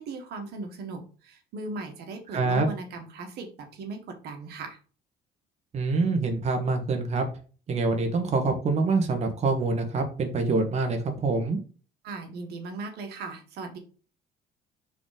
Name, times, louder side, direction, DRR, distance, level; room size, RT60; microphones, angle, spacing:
voice 1, 0.0-4.8 12.0-13.8, right 3 dB, 75° right, 4 dB, 1.5 m, -38 dB
voice 2, 2.3-2.7 5.7-7.2 7.7-11.6, right 3 dB, 40° right, 4 dB, 1.3 m, -25 dB
5.0 x 3.7 x 4.9 m, 0.38 s
cardioid pair, 110°, 17 cm